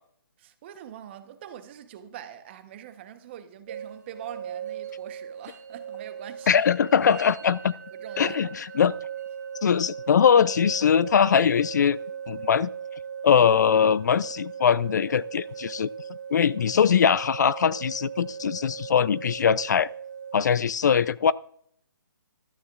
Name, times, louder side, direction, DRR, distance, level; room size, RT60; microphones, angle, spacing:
voice 1, 0.4-6.6 8.0-8.5, right 10 dB, 30° right, 0.9 m, -43 dB
sound 1, 3.7-20.4, right 7 dB, 50° right, 2.3 m, -38 dB
voice 2, 6.5-7.7 8.2-8.9 9.6-12.0 12.3-12.7 13.2-15.9 16.3-19.9 20.3-21.3, left 7 dB, 55° left, 0.4 m, -21 dB
14.0 x 12.5 x 2.4 m
hypercardioid pair, 155°, 12 cm